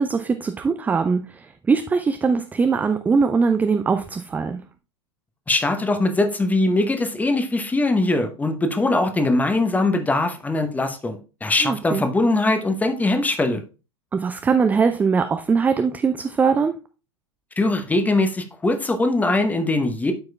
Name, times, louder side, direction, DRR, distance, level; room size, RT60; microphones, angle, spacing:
voice 1, 0.0-4.6 11.6-12.0 14.1-16.8, right 5 dB, 10° right, 0.4 m, -21 dB
voice 2, 5.5-13.6 17.6-20.1, left 2 dB, 10° left, 0.9 m, -21 dB
12.0 x 4.8 x 2.3 m
figure-of-eight pair, 90°, 16 cm